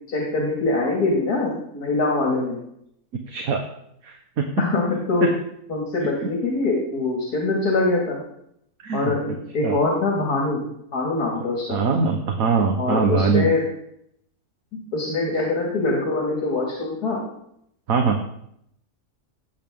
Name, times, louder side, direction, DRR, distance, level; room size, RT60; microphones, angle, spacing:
voice 1, 0.1-2.6 4.6-5.3 5.7-8.2 8.9-10.6 10.9-11.8 12.8-13.6 14.9-17.2, left 3 dB, 80° left, -2 dB, 2.6 m, -23 dB
voice 2, 3.3-3.6 4.0-4.7 5.2-5.3 6.2-6.3 8.8-9.1 9.6-9.8 11.7-13.5 15.3-15.4 15.9-16.0 17.9-18.2, right 5 dB, 65° right, 2 dB, 1.5 m, -22 dB
17.0 x 8.1 x 3.7 m, 0.74 s
omnidirectional pair, 1.6 m